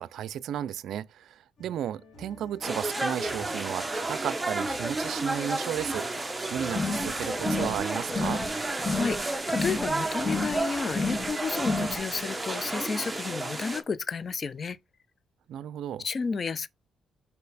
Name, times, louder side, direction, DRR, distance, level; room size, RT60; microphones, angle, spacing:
voice 1, 0.0-6.1 6.5-8.4 15.5-16.1, right 10 dB, 75° right, 0.4 m, -34 dB
sound 1, 1.6-10.8, left 2 dB, 65° left, 2.6 m, -52 dB
sound 2, 2.6-13.8, right 2 dB, 15° right, 1.0 m, -32 dB
sound 3, 6.7-7.1 7.4-7.8 8.1-8.5 8.8-9.2 9.5-9.9 10.2-10.6 10.9-11.3 11.6-12.0, left 3 dB, 25° left, 2.0 m, -31 dB
voice 2, 8.8-14.8 16.0-16.7, left 5 dB, 40° left, 0.5 m, -32 dB
5.4 x 4.2 x 4.1 m
cardioid pair, 90°, 0 cm